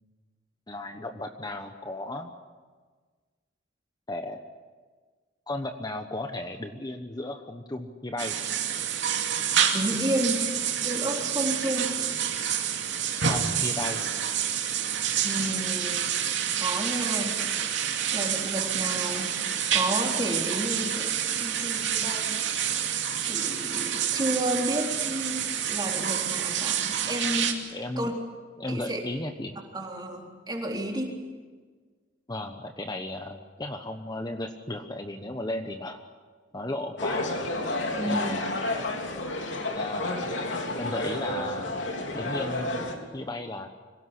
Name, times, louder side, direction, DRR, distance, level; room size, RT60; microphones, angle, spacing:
voice 1, 0.7-2.3 4.1-4.4 5.5-8.4 13.3-14.0 27.7-28.1 28.6-29.6 32.3-36.0 36.5-37.4 38.1-38.5 39.8-40.3 40.8-41.7 42.1-43.7, left 1 dB, 20° left, 6 dB, 1.1 m, -35 dB
sound 1, 8.2-27.5, right 9 dB, 70° right, 2.8 m, -28 dB
voice 2, 9.7-10.4 10.7-11.9 15.2-16.0 16.6-17.8 18.1-19.4 19.7-22.4 23.2-27.6 28.0-28.1 28.7-29.0 29.7-31.1 38.0-38.4, right 1 dB, 25° right, 0 dB, 3.8 m, -31 dB
sound 2, 37.0-43.0, left 2 dB, 75° left, 3.4 m, -30 dB
25.5 x 17.5 x 9.9 m, 1.5 s
head